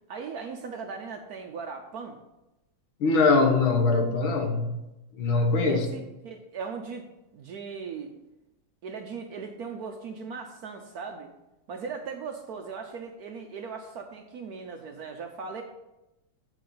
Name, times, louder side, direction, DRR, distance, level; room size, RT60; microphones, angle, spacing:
voice 1, 0.1-2.2 5.6-7.1 7.3-8.1 8.8-11.3 11.7-15.6, right 5 dB, 65° right, 4 dB, 1.0 m, -38 dB
voice 2, 3.0-4.8 5.2-5.9, left 3 dB, 80° left, 5 dB, 1.9 m, -22 dB
9.1 x 5.0 x 5.5 m, 0.95 s
omnidirectional pair, 2.2 m